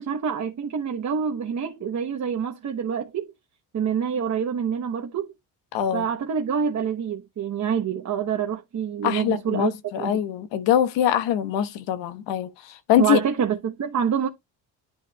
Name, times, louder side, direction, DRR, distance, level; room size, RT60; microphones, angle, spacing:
voice 1, 0.0-3.3 3.7-5.3 5.9-9.7 10.0-10.2 13.0-14.3, right 7 dB, 40° right, 1.1 m, -26 dB
voice 2, 5.7-6.1 9.0-13.2, left 10 dB, 85° left, 1.3 m, -23 dB
10.5 x 5.8 x 2.3 m
cardioid pair, 105°, 42 cm